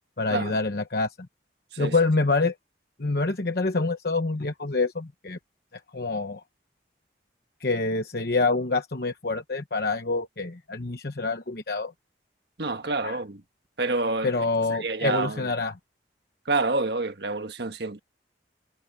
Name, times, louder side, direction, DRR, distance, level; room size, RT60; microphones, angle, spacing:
voice 1, 0.2-1.1 1.8-2.5 3.0-5.4 5.9-6.4 7.6-11.9 13.0-13.2 14.2-15.7, left 3 dB, 55° left, 1.1 m, -26 dB
voice 2, 12.6-13.4 13.8-14.3 14.7-15.5 16.4-18.0, right 3 dB, 65° right, 1.5 m, -28 dB
head